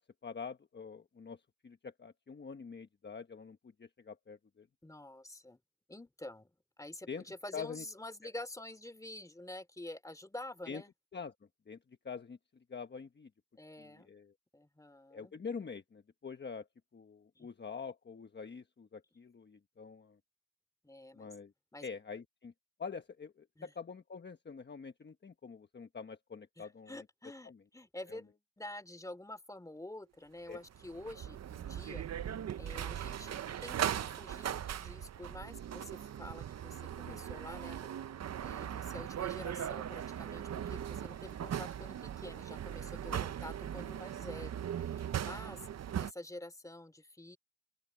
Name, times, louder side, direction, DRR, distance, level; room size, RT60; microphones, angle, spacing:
voice 1, 0.0-4.7 7.1-7.2 7.5-7.8 10.7-10.8 11.1-11.3 11.7-11.8 12.0-12.4 12.7-13.3 13.8-14.3 15.1-16.7 16.9-20.2 21.1-21.5 21.8-22.5 22.8-27.0 27.4-27.6 28.1-28.2 30.5-30.6 37.1-37.2 43.1-43.2 45.4-45.5, left 5 dB, 35° left, 1.2 m, -45 dB
voice 2, 4.8-5.6 5.9-6.5 6.8-10.9 13.6-14.1 14.5-15.3 17.3-17.5 20.8-21.3 21.7-21.9 23.6-23.7 26.6-32.0 32.5-45.7 46.0-47.4, left 1 dB, 10° left, 2.9 m, -48 dB
sound 1, 30.5-46.1, right 10 dB, 60° right, 0.6 m, -39 dB
open air
wide cardioid pair, 130°, 30 cm